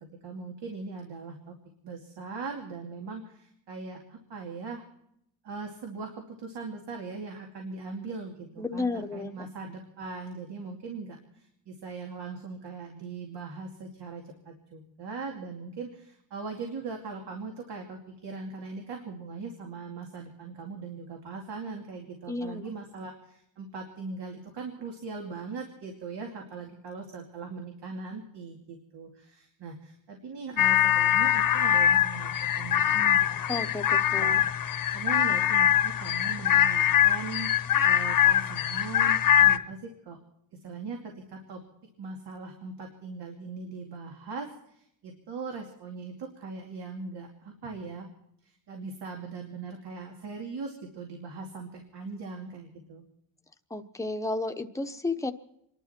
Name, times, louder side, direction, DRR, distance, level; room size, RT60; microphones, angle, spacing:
voice 1, 0.2-1.6 1.8-4.8 5.4-32.3 32.6-33.7 34.2-34.4 34.9-37.5 37.8-40.2 40.5-41.6 42.0-48.1 48.4-53.0, right 4 dB, 80° right, 2 dB, 2.7 m, -40 dB
voice 2, 8.6-9.3 22.3-22.7 33.5-34.4 53.7-55.3, left 3 dB, 10° left, 6 dB, 0.8 m, -32 dB
sound 1, 30.6-39.6, left 10 dB, 55° left, 0.9 m, -23 dB
28.5 x 11.5 x 4.4 m, 0.74 s
wide cardioid pair, 170°, 41 cm